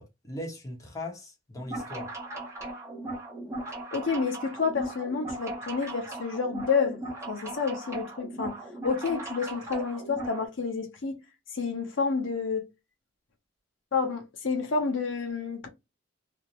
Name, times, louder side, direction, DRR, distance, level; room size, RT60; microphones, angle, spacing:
voice 1, 0.0-2.1, left 1 dB, 15° left, 0.8 m, -39 dB
sound 1, 1.6-10.5, right 1 dB, 15° right, 0.8 m, -38 dB
voice 2, 3.9-7.0 7.3-11.2 11.5-12.6 13.9-15.7, left 5 dB, 90° left, 0.8 m, -29 dB
2.6 x 2.0 x 2.9 m
head